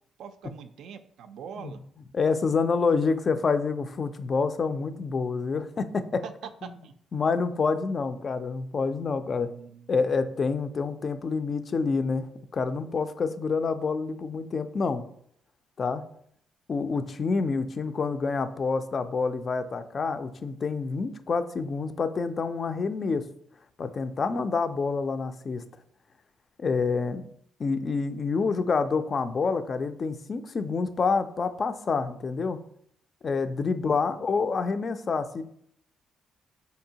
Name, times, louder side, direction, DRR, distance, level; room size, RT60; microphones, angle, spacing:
voice 1, 0.2-1.8 6.2-6.3 6.6-6.9 9.4-9.9 16.8-17.0 34.1-34.3, right 7 dB, 80° right, 9 dB, 0.3 m, -44 dB
voice 2, 2.1-6.2 6.6-6.7 7.1-9.5 9.9-15.0 15.8-16.0 16.7-23.3 23.8-25.6 26.6-27.2 27.6-32.6 33.2-35.4, left 4 dB, 45° left, 11 dB, 0.3 m, -27 dB
4.3 x 2.7 x 2.8 m, 0.68 s
cardioid pair, 90°, 0 cm